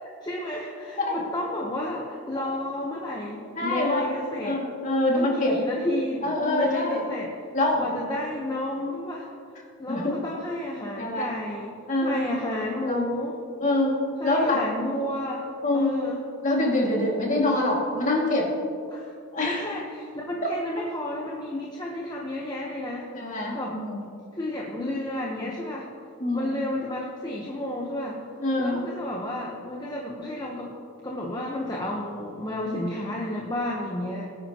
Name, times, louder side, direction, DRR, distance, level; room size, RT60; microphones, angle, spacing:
voice 1, 0.0-4.6 5.1-7.3 7.8-9.3 9.8-13.4 14.2-15.5 15.7-16.2 18.9-19.1 19.4-23.8 24.3-25.9 26.3-28.2 28.6-30.7 31.0-34.3, left 1 dB, 20° left, -3 dB, 1.0 m, -32 dB
voice 2, 3.6-4.0 4.4-5.6 6.2-7.0 7.5-8.0 9.9-10.1 11.0-11.3 11.9-12.2 12.8-13.0 13.6-14.0 14.2-14.6 15.6-16.0 16.4-18.5 19.3-19.8 20.4-20.5 23.1-24.0 26.2-26.5 28.4-28.8, left 2 dB, 35° left, -3 dB, 2.3 m, -25 dB
22.0 x 9.4 x 3.0 m, 2.4 s
head